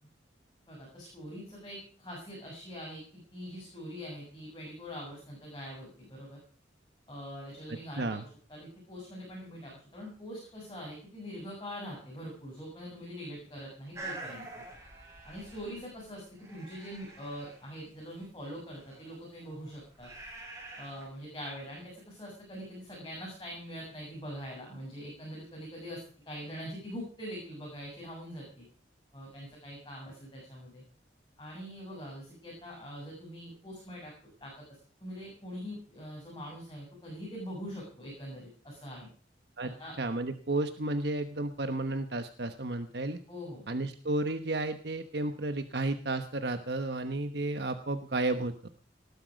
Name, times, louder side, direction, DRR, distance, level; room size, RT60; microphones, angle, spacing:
voice 1, 0.7-6.4 7.1-14.6 15.2-20.1 20.8-28.6 29.1-30.8 31.4-34.1 34.4-34.5 35.0-39.1 39.6-39.9 43.3-43.6, equal, 25° left, -3 dB, 7.6 m, -43 dB
voice 2, 8.0-8.3 39.6-43.2 43.7-48.7, right 2 dB, 60° right, 8 dB, 1.1 m, -32 dB
sound 1, 13.9-16.1 16.4-17.6 18.8-21.0, right 2 dB, 15° right, 5.4 m, -46 dB
19.0 x 12.0 x 5.2 m, 0.41 s
head